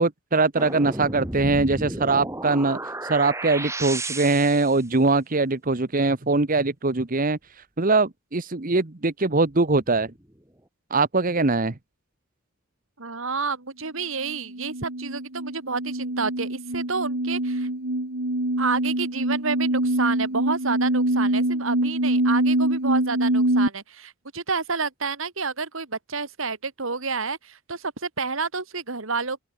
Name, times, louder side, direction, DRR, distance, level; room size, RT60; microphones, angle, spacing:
voice 1, 0.0-7.4 7.8-10.1 10.9-11.7, right 3 dB, 40° right, 1.2 m, -22 dB
sound 1, 0.6-4.8 9.7-10.3, right 2 dB, 15° right, 3.6 m, -33 dB
voice 2, 13.0-17.7 18.6-29.4, right 4 dB, 65° right, 2.3 m, -30 dB
sound 2, 14.2-23.7, right 1 dB, 90° right, 3.2 m, -24 dB
head